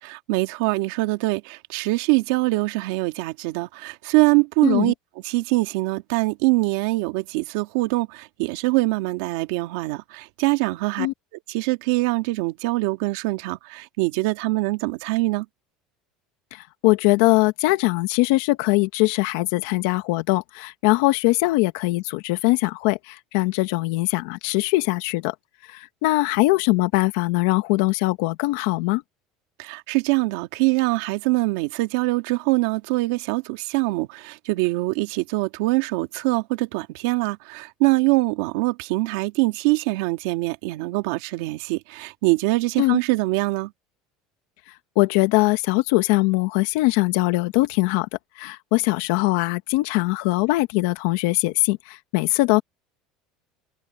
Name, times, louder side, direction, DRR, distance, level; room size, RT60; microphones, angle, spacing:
voice 1, 0.0-4.9 5.2-11.1 11.5-15.5 29.6-43.7, right 22 dB, 75° right, 2.2 m, -23 dB
voice 2, 4.6-4.9 11.0-11.1 16.5-25.3 25.7-29.0 42.8-43.0 44.9-48.1 48.4-52.6, left 21 dB, 75° left, 1.5 m, -21 dB
cardioid pair, 165°, 0 cm